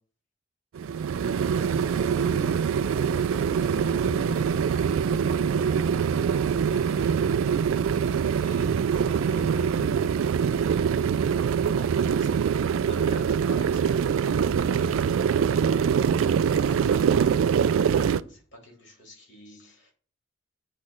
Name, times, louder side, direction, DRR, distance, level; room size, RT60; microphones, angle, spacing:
sound 1, 0.7-18.2, right 7 dB, 80° right, 0.3 m, -24 dB
voice 1, 1.2-3.0 3.5-6.0 6.6-7.5 8.0-10.1 11.8-11.9 14.6-15.1 19.5-19.7, left 1 dB, 40° left, 1.0 m, -46 dB
sound 2, 1.5-7.1, right 1 dB, 15° right, 1.0 m, -42 dB
voice 2, 11.6-12.6 12.8-14.1 16.1-19.9, left 1 dB, 60° left, 2.7 m, -47 dB
8.3 x 3.2 x 5.8 m
head